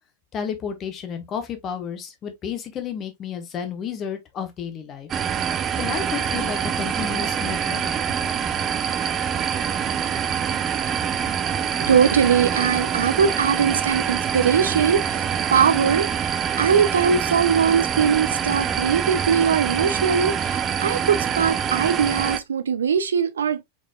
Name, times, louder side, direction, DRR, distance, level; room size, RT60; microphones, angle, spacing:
voice 1, 0.3-5.1 5.8-7.9, left 7 dB, 30° left, 1.2 m, -31 dB
sound 1, 5.1-22.4, right 8 dB, 25° right, 0.6 m, -25 dB
voice 2, 11.8-23.6, right 7 dB, 70° right, 0.6 m, -21 dB
4.9 x 4.2 x 2.4 m
figure-of-eight pair, 90°, 0 cm